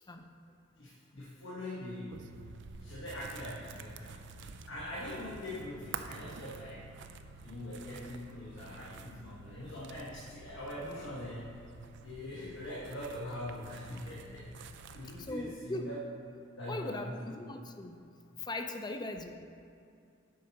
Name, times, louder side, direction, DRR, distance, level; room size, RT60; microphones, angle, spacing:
voice 1, 0.8-2.3 2.8-6.9 7.4-11.6 12.0-14.5 14.7-16.0 16.6-17.2, left 1 dB, 80° left, -7 dB, 1.4 m, -43 dB
sound 1, 2.1-15.3, right 4 dB, 65° right, 0.4 m, -49 dB
voice 2, 15.2-15.9 16.7-18.0 18.4-19.3, left 2 dB, 20° left, 5 dB, 0.5 m, -39 dB
8.4 x 4.1 x 5.8 m, 2.5 s
head